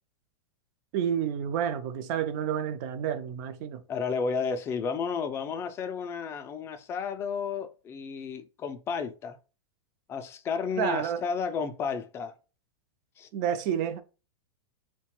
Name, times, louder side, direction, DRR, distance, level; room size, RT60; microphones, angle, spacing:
voice 1, 0.9-3.8 10.8-11.2 13.3-14.0, right 9 dB, 45° right, 0.4 m, -29 dB
voice 2, 3.9-9.4 10.1-12.3 13.2-13.3, left 5 dB, 20° left, 0.3 m, -32 dB
2.7 x 2.2 x 2.9 m
hypercardioid pair, 140°, 13 cm